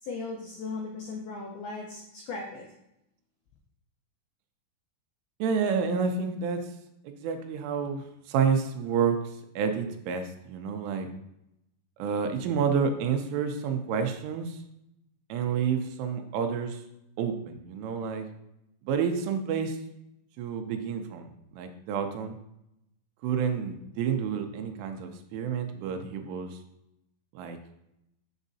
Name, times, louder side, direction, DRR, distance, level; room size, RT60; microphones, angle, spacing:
voice 1, 0.0-2.7, left 3 dB, 90° left, -1 dB, 2.1 m, -37 dB
voice 2, 5.4-6.7 7.0-9.2 9.6-11.1 12.0-14.6 15.3-16.8 17.2-18.3 18.8-19.8 20.4-22.4 23.2-26.6 27.3-27.6, right 6 dB, 80° right, 6 dB, 3.2 m, -29 dB
7.8 x 7.2 x 2.7 m, 0.83 s
omnidirectional pair, 5.7 m